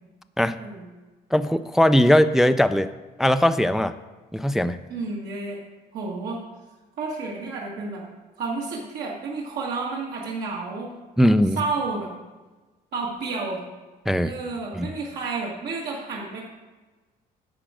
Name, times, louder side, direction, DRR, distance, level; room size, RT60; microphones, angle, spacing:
voice 1, 1.3-2.9 3.2-4.0 4.3-4.8 11.2-11.6 14.1-14.3 14.8-14.9, equal, ahead, 11 dB, 0.3 m, -19 dB
voice 2, 4.9-5.6 5.9-6.4 7.0-8.0 8.4-10.9 11.6-12.1 12.9-13.6 14.2-16.4, right 3 dB, 75° right, -3 dB, 1.9 m, -30 dB
10.0 x 4.9 x 7.4 m, 1.2 s
cardioid pair, 110°, 17 cm